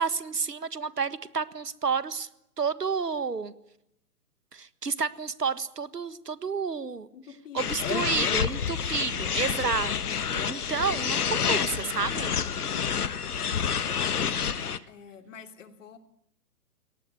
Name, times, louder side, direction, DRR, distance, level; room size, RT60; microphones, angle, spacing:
voice 1, 0.0-2.3 2.6-3.5 4.5-7.1 7.5-9.9 10.3-12.3 14.1-14.6, right 5 dB, 85° right, 16 dB, 1.6 m, -30 dB
voice 2, 7.1-7.9 12.6-13.1 14.9-16.0, left 6 dB, 50° left, 8 dB, 2.8 m, -47 dB
sound 1, 7.6-14.8, left 7 dB, 70° left, 1.5 m, -28 dB
23.5 x 18.5 x 9.5 m, 0.81 s
figure-of-eight pair, 130°, 47 cm